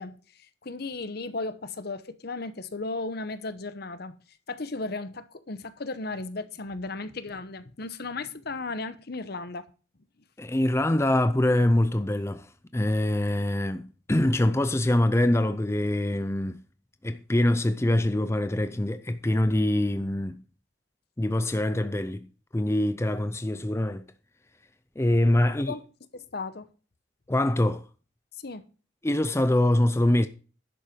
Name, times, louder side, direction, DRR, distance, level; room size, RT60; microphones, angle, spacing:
voice 1, 0.0-4.2 4.5-9.6 25.4-25.8 26.1-26.7 28.4-28.6, left 3 dB, 55° left, 0.9 m, -35 dB
voice 2, 10.4-16.6 17.0-20.4 21.2-24.1 25.0-25.7 27.3-27.9 29.0-30.3, left 1 dB, 15° left, 0.5 m, -24 dB
11.0 x 7.4 x 5.2 m
head